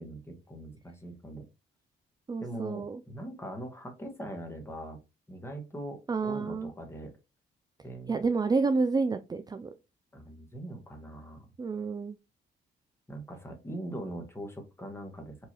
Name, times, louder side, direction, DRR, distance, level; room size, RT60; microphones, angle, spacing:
voice 1, 0.0-1.5 2.4-5.0 5.3-7.1 7.8-8.2 10.1-11.5 13.1-15.5, right 1 dB, 10° left, 3 dB, 1.4 m, -41 dB
voice 2, 2.3-3.0 6.1-6.7 8.1-9.7 11.6-12.2, right 4 dB, 20° right, 8 dB, 0.4 m, -29 dB
4.7 x 2.8 x 2.9 m, 0.26 s
cardioid pair, 90°, 20 cm